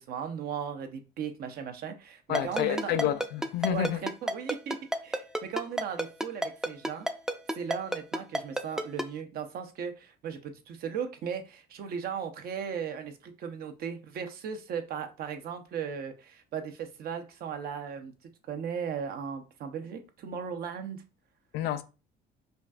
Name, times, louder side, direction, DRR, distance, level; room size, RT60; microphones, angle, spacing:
voice 1, 0.0-2.9 3.7-4.8 5.0-7.1 7.5-18.1 18.5-21.1, right 7 dB, 65° right, 0.7 m, -37 dB
voice 2, 2.3-4.0 21.5-21.8, left 11 dB, 80° left, 0.4 m, -29 dB
Ringtone, 2.3-9.0, right 1 dB, 5° right, 0.4 m, -29 dB
5.2 x 2.4 x 2.4 m
cardioid pair, 110°, 17 cm